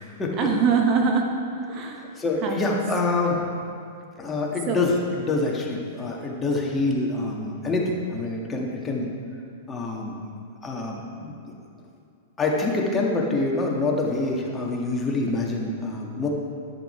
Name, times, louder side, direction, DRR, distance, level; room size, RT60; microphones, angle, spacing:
voice 1, 0.4-2.1 2.4-2.8 4.7-4.9, right 5 dB, 40° right, 3 dB, 1.1 m, -24 dB
voice 2, 2.2-3.4 4.2-9.1 9.7-10.1 10.6-11.5 12.4-16.3, left 3 dB, 15° left, -2 dB, 1.9 m, -26 dB
10.5 x 9.7 x 4.5 m, 2.4 s
hypercardioid pair, 105°, 0 cm